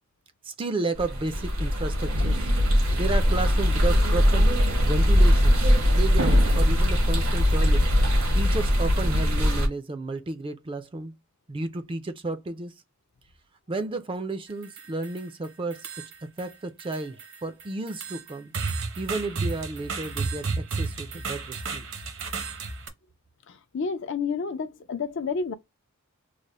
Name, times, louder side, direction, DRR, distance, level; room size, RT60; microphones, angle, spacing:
voice 1, 0.4-2.5 3.0-4.6 4.8-5.6 5.9-7.8 8.3-11.1 11.5-12.7 13.7-15.9 16.4-18.5 19.0-21.9, right 2 dB, 25° right, 0.4 m, -32 dB
sound 1, 0.9-9.7, equal, 80° right, 1.2 m, -21 dB
sound 2, 14.5-15.3 15.7-16.5 16.8-22.9, right 4 dB, 60° right, 0.8 m, -33 dB
voice 2, 23.7-25.5, left 5 dB, 60° left, 0.5 m, -29 dB
3.2 x 2.0 x 3.9 m
head